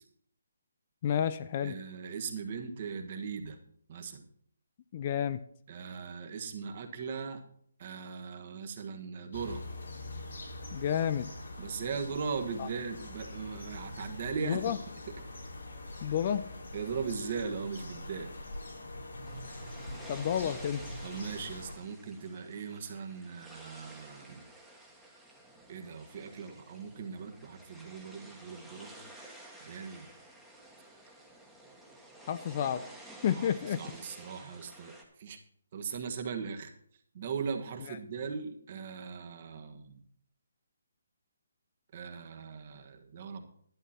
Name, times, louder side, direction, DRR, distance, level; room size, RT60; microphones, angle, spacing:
voice 1, 1.0-1.7 4.9-5.4 10.7-11.3 12.6-12.7 14.4-14.8 16.0-16.5 20.1-20.8 32.3-32.9 33.2-33.8 37.9-38.0, left 9 dB, 35° left, 13 dB, 0.5 m, -30 dB
voice 2, 1.6-3.6 3.9-4.3 5.7-7.4 7.8-9.6 11.6-14.7 16.7-18.3 21.0-24.4 25.7-28.9 29.6-30.1 33.3-33.5 33.8-35.4 35.7-36.7 37.1-40.0 41.9-43.4, right 5 dB, 40° right, 4 dB, 1.5 m, -39 dB
sound 1, 9.3-21.7, left 1 dB, 75° left, 3.0 m, -44 dB
sound 2, 19.2-35.0, right 1 dB, ahead, 1.4 m, -52 dB
11.5 x 9.8 x 4.3 m, 0.65 s
hypercardioid pair, 155°, 0 cm